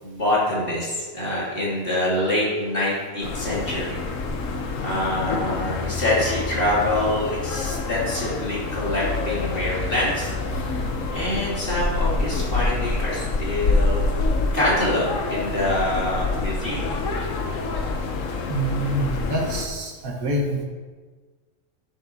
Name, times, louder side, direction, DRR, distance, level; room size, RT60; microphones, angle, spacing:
voice 1, 0.0-4.0 4.8-10.3 11.1-14.0 14.5-16.9, left 1 dB, 40° left, -7 dB, 2.9 m, -25 dB
sound 1, 3.2-19.7, left 3 dB, 65° left, 1.2 m, -27 dB
voice 2, 18.5-20.6, right 1 dB, 75° right, -1 dB, 1.8 m, -26 dB
12.0 x 7.5 x 2.8 m, 1.4 s
omnidirectional pair, 1.5 m